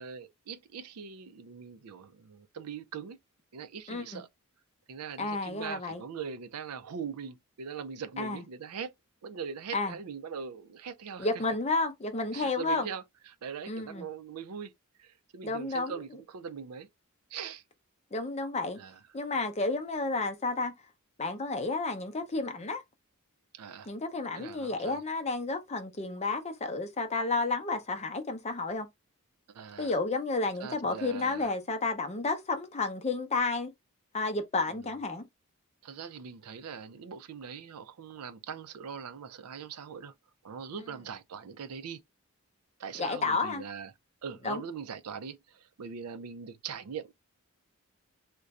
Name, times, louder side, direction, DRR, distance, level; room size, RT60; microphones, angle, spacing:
voice 1, 0.0-3.2 3.5-4.3 4.9-8.9 9.2-11.3 12.3-14.7 15.0-16.9 17.3-17.6 18.8-19.0 23.5-23.9 24.4-25.0 29.5-30.0 30.6-31.5 34.7-34.9 35.8-40.1 40.4-42.0 42.8-43.9 44.2-47.1, right 6 dB, 85° right, 0.4 m, -41 dB
voice 2, 3.9-4.2 5.2-6.0 8.2-8.4 9.7-9.9 11.2-12.9 13.7-14.1 15.4-15.9 18.1-18.8 19.1-20.7 21.2-22.8 23.9-28.9 29.8-33.7 34.1-35.2 43.0-43.6 44.4-44.6, left 3 dB, 30° left, 0.6 m, -31 dB
2.5 x 2.2 x 4.0 m
head